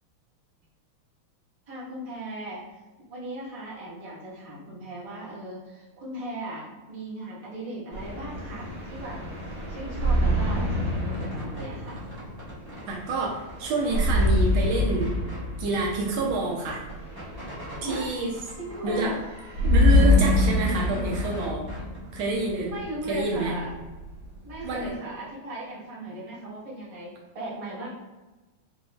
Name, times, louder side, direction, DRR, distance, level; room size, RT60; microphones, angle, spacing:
voice 1, 1.7-2.6 3.1-9.2 9.5-12.0 17.8-18.1 18.6-19.2 22.6-23.7 24.4-27.9, right 1 dB, 55° right, -7 dB, 0.4 m, -38 dB
sound 1, 7.9-24.9, left 1 dB, 35° right, 1.4 m, -26 dB
sound 2, 11.0-12.9 13.2-14.3 14.9-15.4 15.9-16.0 16.2-18.1 18.4-19.3 19.5-22.0, equal, 15° right, 0.8 m, -43 dB
voice 2, 12.9-15.1 15.6-16.8 17.8-18.4 18.8-19.1 19.6-21.7 22.1-22.7 23.1-23.6 24.6-24.9, right 2 dB, 75° right, -1 dB, 1.4 m, -27 dB
4.7 x 2.9 x 2.3 m, 1.2 s
omnidirectional pair, 2.3 m